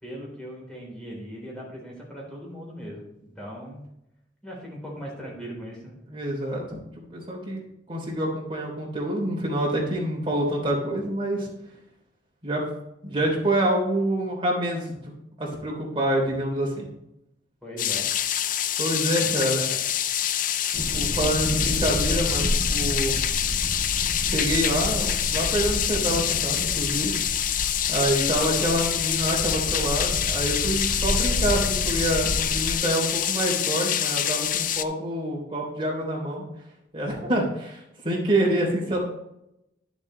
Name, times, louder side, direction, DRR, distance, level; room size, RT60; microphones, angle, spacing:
voice 1, 0.0-3.1 3.4-3.9 4.4-6.0 17.6-18.1 19.2-19.8, equal, 5° left, -4 dB, 3.7 m, -39 dB
voice 2, 6.1-7.6 7.9-11.5 12.4-12.7 13.0-15.1 15.4-16.9 18.8-19.7 20.9-23.2 24.2-27.1 27.9-36.4 36.9-39.0, right 1 dB, 30° right, -3 dB, 3.2 m, -27 dB
sound 1, 17.8-34.8, left 10 dB, 50° left, 0.4 m, -26 dB
sound 2, 20.7-32.8, equal, 80° right, 1.4 m, -31 dB
11.0 x 7.2 x 3.2 m, 0.83 s
head